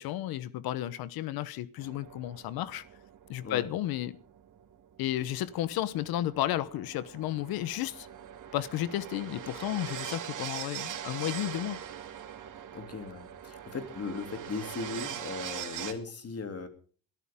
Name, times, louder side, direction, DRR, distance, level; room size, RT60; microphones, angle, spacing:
voice 1, 0.0-2.8 3.3-4.2 5.0-8.1 8.5-11.8, left 13 dB, 80° left, 1.1 m, -33 dB
sound 1, 1.8-15.9, right 9 dB, 55° right, 2.6 m, -42 dB
voice 2, 12.7-16.7, left 4 dB, 40° left, 2.9 m, -38 dB
22.5 x 13.0 x 3.7 m
cardioid pair, 100°, 36 cm